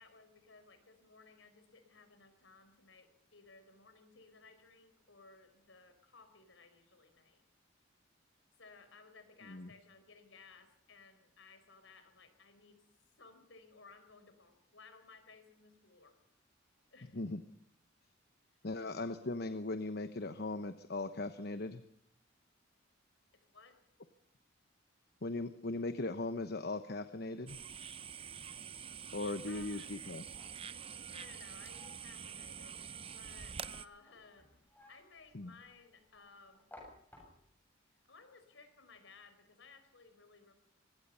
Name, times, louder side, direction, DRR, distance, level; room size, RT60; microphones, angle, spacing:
voice 1, 0.0-7.4 8.6-12.8 13.2-16.2 16.9-17.2 23.5-23.8 29.5-29.9 31.1-34.5 34.9-36.6 38.0-40.5, left 4 dB, 70° left, 8 dB, 4.6 m, -59 dB
voice 2, 18.6-21.8 25.2-27.6 29.1-30.2 35.3-35.5, left 2 dB, 55° left, 10 dB, 1.1 m, -39 dB
sound 1, 27.5-33.9, right 7 dB, 30° right, 0.7 m, -46 dB
sound 2, 29.3-37.7, left 1 dB, 10° left, 7.5 m, -62 dB
24.0 x 20.5 x 5.6 m, 0.70 s
head